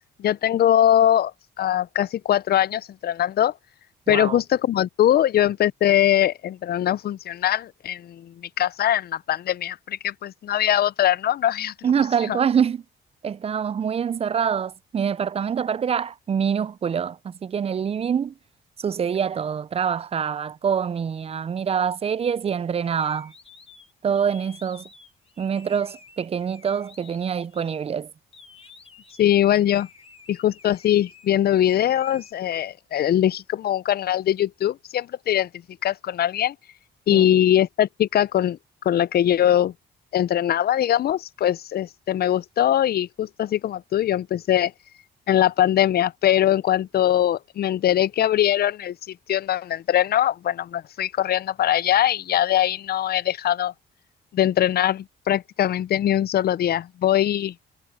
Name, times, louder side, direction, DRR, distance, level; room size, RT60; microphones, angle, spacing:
voice 1, 0.2-1.3 1.6-3.5 4.1-11.7 29.2-29.9 30.3-35.5 35.8-36.5 37.1-38.6 38.9-39.7 40.1-44.7 45.3-53.7 54.3-57.5, left 11 dB, 50° left, 0.5 m, -21 dB
voice 2, 4.1-4.4 11.8-12.8 13.2-18.3 18.8-23.3 24.0-24.9 25.4-28.1 37.1-37.3, right 7 dB, 30° right, 0.4 m, -25 dB
sound 1, 22.8-27.8 28.3-31.3 31.7-32.3, left 5 dB, 30° left, 1.9 m, -50 dB
cardioid pair, 90°, 20 cm